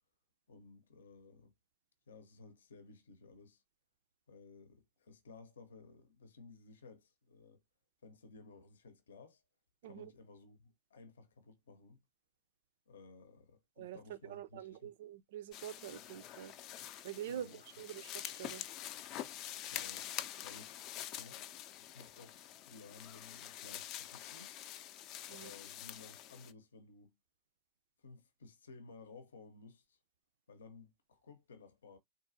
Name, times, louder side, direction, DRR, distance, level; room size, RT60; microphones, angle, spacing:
voice 1, 0.5-1.5 2.1-3.6 4.3-7.6 8.0-9.4 9.8-12.0 12.9-14.9 17.3-17.6 19.7-20.1 20.4-20.8 21.1-21.5 21.8-24.5 25.3-27.2 28.0-30.0 30.5-32.0, left 4 dB, 65° left, 0.7 m, -57 dB
voice 2, 13.8-16.5 17.0-18.7 25.3-25.5, right 10 dB, 55° right, 0.4 m, -46 dB
sound 1, 15.5-26.5, left 12 dB, 40° left, 0.5 m, -46 dB
3.9 x 2.5 x 2.5 m
figure-of-eight pair, 90°, 0 cm